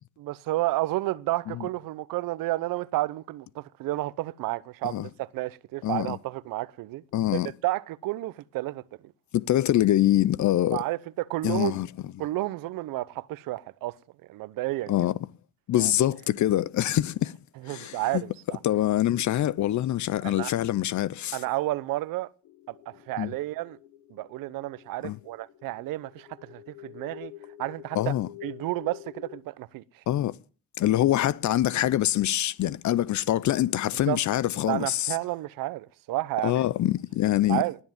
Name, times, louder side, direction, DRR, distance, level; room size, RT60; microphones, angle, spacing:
voice 1, 0.2-7.0 7.3-9.1 10.7-11.8 12.2-14.0 14.3-14.9 15.8-15.9 17.6-18.6 20.2-20.5 21.3-22.3 22.7-23.8 24.1-27.3 27.6-28.1 28.4-29.8 34.1-34.2 34.7-36.5 37.5-37.8, right 18 dB, 80° right, 0.9 m, -31 dB
voice 2, 5.8-6.2 7.1-7.5 9.3-10.8 11.4-11.9 14.9-15.1 15.7-17.3 17.7-18.2 18.6-21.4 23.2-23.3 25.0-25.2 27.9-28.3 30.1-30.4 30.8-35.1 36.4-37.6, left 13 dB, 60° left, 0.7 m, -25 dB
sound 1, 22.5-29.4, left 14 dB, 80° left, 1.1 m, -48 dB
19.5 x 7.2 x 9.2 m
supercardioid pair, 65°, 33 cm